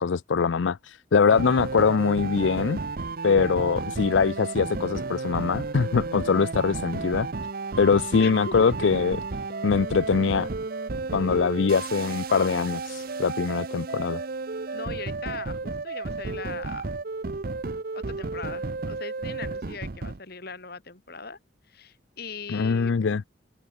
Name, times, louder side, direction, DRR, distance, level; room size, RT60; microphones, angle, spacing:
voice 1, 0.0-2.8 3.2-7.3 7.8-9.2 9.6-10.5 11.1-14.2 22.5-23.2, left 5 dB, 75° left, 0.5 m, -23 dB
sound 1, 1.3-20.2, right 3 dB, 50° right, 0.8 m, -33 dB
voice 2, 8.2-8.7 14.7-16.9 17.9-21.4 21.7-23.0, left 4 dB, 55° left, 2.7 m, -40 dB
head